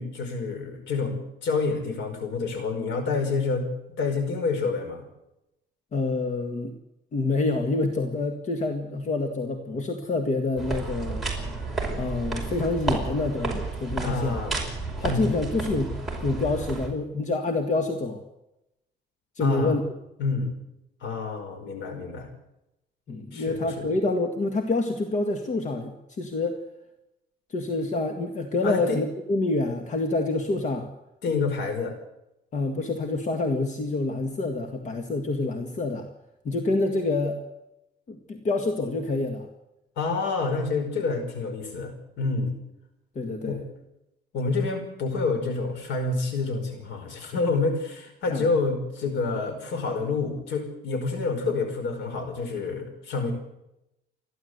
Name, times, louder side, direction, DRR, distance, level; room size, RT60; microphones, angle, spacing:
voice 1, 0.0-3.6 4.0-5.0 14.0-14.6 15.0-15.4 19.4-19.8 20.2-20.6 21.0-22.3 23.3-23.9 28.6-29.0 31.2-32.0 40.0-42.5 43.5-43.6 44.3-53.3, left 4 dB, 85° left, 7 dB, 5.2 m, -28 dB
voice 2, 5.9-6.7 7.1-11.2 12.0-14.4 15.0-15.9 16.2-18.2 19.4-19.8 23.1-26.6 27.5-30.9 32.5-36.1 36.4-37.4 38.1-39.5 43.2-43.6 48.3-48.5, left 3 dB, 45° left, 6 dB, 2.0 m, -27 dB
sound 1, 10.6-16.9, right 3 dB, ahead, 5.4 m, -31 dB
29.0 x 11.5 x 8.2 m, 0.89 s
cardioid pair, 135°, 18 cm